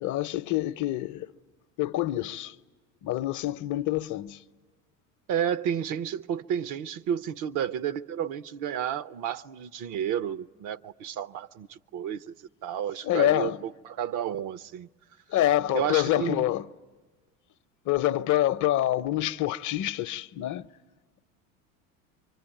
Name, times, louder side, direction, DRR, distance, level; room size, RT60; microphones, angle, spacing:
voice 1, 0.0-1.3 1.8-2.5 3.0-4.4 13.0-13.6 15.3-16.7 17.8-20.7, left 14 dB, 50° left, 0.8 m, -26 dB
voice 2, 5.3-12.3 12.6-14.9 15.7-16.5, right 9 dB, 50° right, 0.8 m, -31 dB
26.0 x 24.0 x 9.0 m
hypercardioid pair, 80°, 40 cm